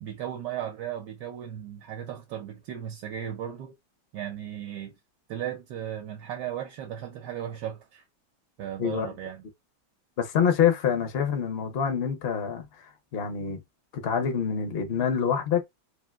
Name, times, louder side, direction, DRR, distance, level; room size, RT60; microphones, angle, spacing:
voice 1, 0.0-3.7 4.1-5.0 5.3-8.0 8.6-9.5, right 10 dB, 75° right, 1.2 m, -36 dB
voice 2, 10.2-12.6 13.1-13.6 13.9-15.6, left 7 dB, 60° left, 0.6 m, -26 dB
3.5 x 2.5 x 2.3 m
omnidirectional pair, 1.9 m